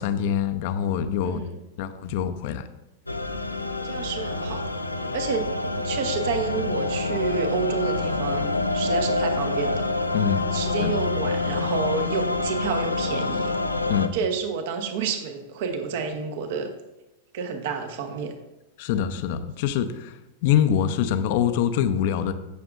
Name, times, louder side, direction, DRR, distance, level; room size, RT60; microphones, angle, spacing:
voice 1, 0.0-1.4 1.8-2.7 10.1-10.4 10.8-10.9 13.9-14.1 18.8-22.3, left 9 dB, 50° left, 10 dB, 0.7 m, -24 dB
voice 2, 1.2-1.6 3.8-4.6 5.1-5.5 5.8-9.8 10.5-13.6 14.1-16.7 17.3-18.3, right 6 dB, 50° right, 6 dB, 1.3 m, -29 dB
sound 1, 3.1-14.1, left 3 dB, 85° left, 0.6 m, -27 dB
16.5 x 7.0 x 2.6 m, 0.96 s
figure-of-eight pair, 95°, 0 cm